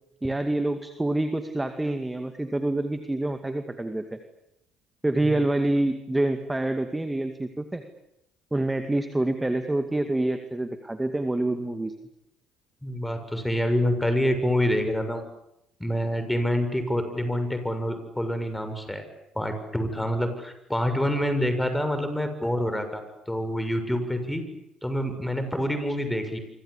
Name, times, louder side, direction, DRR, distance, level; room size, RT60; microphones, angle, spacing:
voice 1, 0.2-4.2 5.0-7.8 8.5-11.9, right 2 dB, 10° right, 7 dB, 2.4 m, -27 dB
voice 2, 12.8-15.2 15.8-19.1 19.4-24.4 24.8-26.4, equal, 5° left, 8 dB, 7.0 m, -27 dB
28.0 x 25.5 x 8.4 m, 0.82 s
figure-of-eight pair, 55°, 0 cm